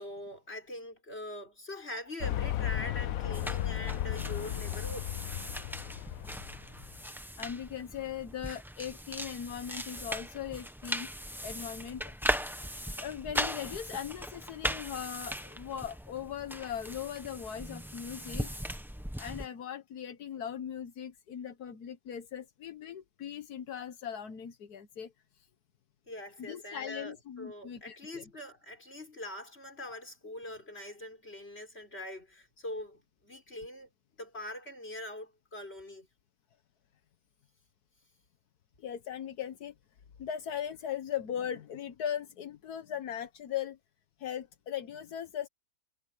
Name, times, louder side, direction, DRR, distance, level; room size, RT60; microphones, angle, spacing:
voice 1, 0.0-5.1 26.1-33.9 34.2-36.1, left 1 dB, 40° left, 6.3 m, -43 dB
sound 1, 2.2-7.0, left 12 dB, 70° left, 1.1 m, -35 dB
sound 2, 3.3-19.5, equal, ahead, 1.0 m, -39 dB
voice 2, 7.4-11.1 11.4-12.1 13.0-18.5 19.2-25.5 26.4-28.2 38.8-39.7 40.2-43.8 44.2-45.5, left 9 dB, 85° left, 1.7 m, -39 dB
omnidirectional pair, 1.6 m